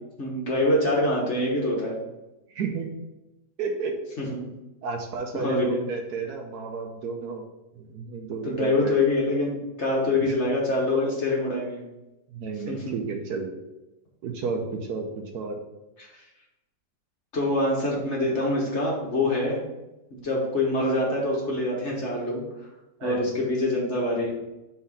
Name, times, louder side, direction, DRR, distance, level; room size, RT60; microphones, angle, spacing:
voice 1, 0.2-2.0 4.2-4.4 5.3-5.8 8.4-11.8 12.7-12.9 17.3-19.6 20.1-22.4 23.0-24.3, left 2 dB, 45° left, -3 dB, 1.4 m, -25 dB
voice 2, 2.5-2.9 3.6-3.9 4.8-7.4 7.7-9.0 10.1-10.3 12.3-13.5 14.2-15.6 23.0-23.3, right 4 dB, 70° right, 3 dB, 1.2 m, -32 dB
4.3 x 4.1 x 5.6 m, 0.97 s
omnidirectional pair, 1.9 m